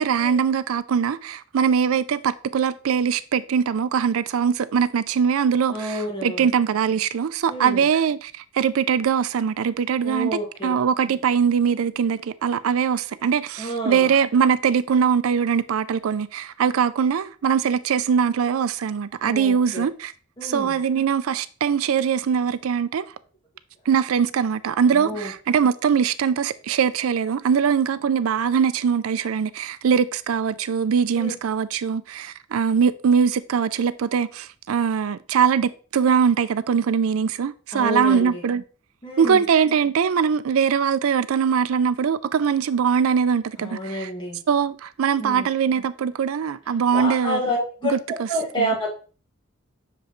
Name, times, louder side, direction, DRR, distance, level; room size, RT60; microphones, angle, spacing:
voice 1, 0.0-20.1 20.4-23.1 23.9-38.6 39.2-44.1 44.5-47.4 47.8-48.3 48.6-48.7, right 7 dB, 85° right, 0.4 m, -22 dB
voice 2, 5.7-6.5 7.5-7.8 10.0-10.8 13.6-14.1 19.2-19.9 20.4-20.8 24.9-25.3 31.2-31.3 37.7-38.4 39.0-39.4 43.6-44.4 45.2-45.5 46.9-48.9, equal, 25° left, 2.0 m, -29 dB
6.7 x 5.0 x 3.1 m
head